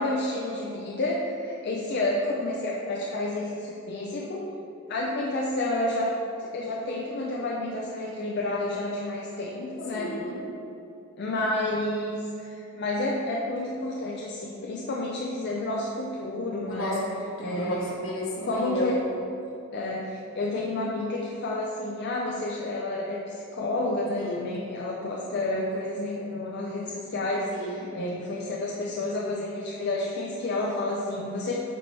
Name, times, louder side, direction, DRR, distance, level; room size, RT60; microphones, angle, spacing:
voice 1, 0.0-4.5 4.9-10.2 11.2-17.0 17.4-18.0 18.4-19.0 19.7-31.6, left 2 dB, 50° left, -3 dB, 0.5 m, -30 dB
voice 2, 9.9-10.5 16.7-19.2 24.2-24.5 27.5-27.9, equal, 70° left, -4 dB, 1.3 m, -33 dB
7.7 x 4.1 x 3.3 m, 2.7 s
head